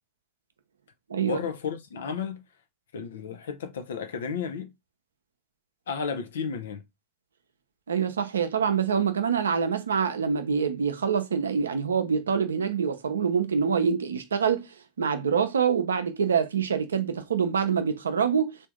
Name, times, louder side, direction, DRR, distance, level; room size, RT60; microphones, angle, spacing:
voice 1, 1.2-2.4 2.9-4.7 5.9-6.8, left 6 dB, 80° left, 0.6 m, -33 dB
voice 2, 7.9-14.7 15.0-18.6, right 6 dB, 85° right, 0.5 m, -25 dB
3.5 x 2.6 x 3.5 m
hypercardioid pair, 85°, 0 cm